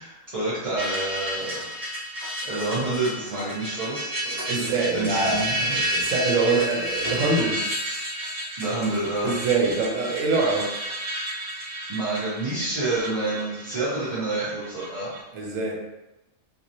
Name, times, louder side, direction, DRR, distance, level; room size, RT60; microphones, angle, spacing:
voice 1, 0.0-1.6 2.4-4.1 4.5-4.7 4.9-5.8 8.6-9.3 11.9-15.2, right 2 dB, 35° right, -12 dB, 0.8 m, -28 dB
sound 1, 0.8-15.2, right 1 dB, 55° right, 1.1 m, -31 dB
voice 2, 4.5-7.6 9.2-10.9 15.3-15.8, right 3 dB, 90° right, -1 dB, 1.1 m, -24 dB
3.0 x 2.6 x 2.6 m, 0.99 s
omnidirectional pair, 1.3 m